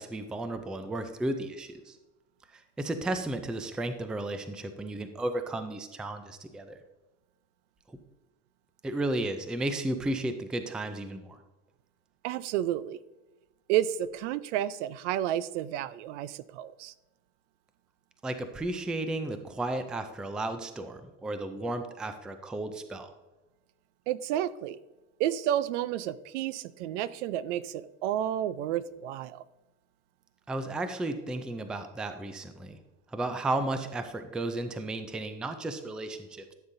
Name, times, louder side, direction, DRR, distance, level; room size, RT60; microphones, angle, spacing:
voice 1, 0.0-2.0 2.5-6.8 7.9-8.0 8.8-11.4 18.2-23.1 30.5-32.8 33.1-36.5, right 2 dB, ahead, 9 dB, 0.3 m, -34 dB
voice 2, 12.2-13.0 13.7-16.9 24.1-24.8 25.2-29.4, right 11 dB, 70° right, 17 dB, 0.6 m, -31 dB
13.5 x 7.2 x 2.6 m, 1.1 s
supercardioid pair, 130°, 37 cm